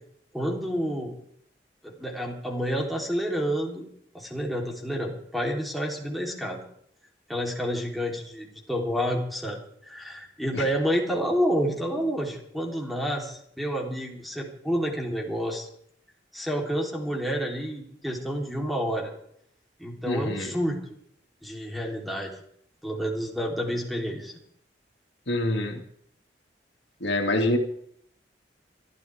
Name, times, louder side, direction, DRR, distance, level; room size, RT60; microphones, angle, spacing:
voice 1, 0.3-1.1 1.8-3.8 4.1-6.6 7.3-15.7 16.3-19.1 19.8-20.8 21.4-22.4 22.8-24.4, equal, ahead, -2 dB, 3.6 m, -29 dB
voice 2, 20.1-20.5 25.3-25.8 27.0-27.6, left 1 dB, 75° left, 3 dB, 2.6 m, -26 dB
24.5 x 13.0 x 3.6 m, 0.67 s
head